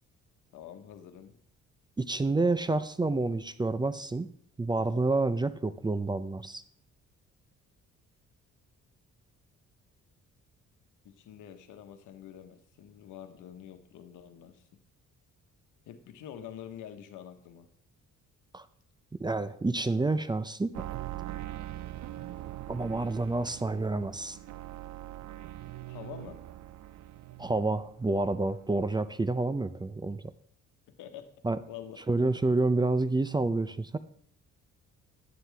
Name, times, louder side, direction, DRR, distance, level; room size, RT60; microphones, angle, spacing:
voice 1, 0.5-1.4 11.0-14.6 15.9-17.7 25.9-26.4 31.0-31.3 31.7-32.0, left 10 dB, 85° left, 8 dB, 1.1 m, -46 dB
voice 2, 2.0-4.3 4.6-6.6 18.5-18.7 19.2-20.9 22.7-24.4 27.4-30.2 31.4-31.6 32.1-34.0, right 2 dB, 15° right, 14 dB, 0.5 m, -28 dB
sound 1, 20.7-28.2 28.5-29.2 29.4-29.5, right 14 dB, 70° right, 0.6 m, -42 dB
11.5 x 9.2 x 3.4 m, 0.64 s
cardioid pair, 90°, 30 cm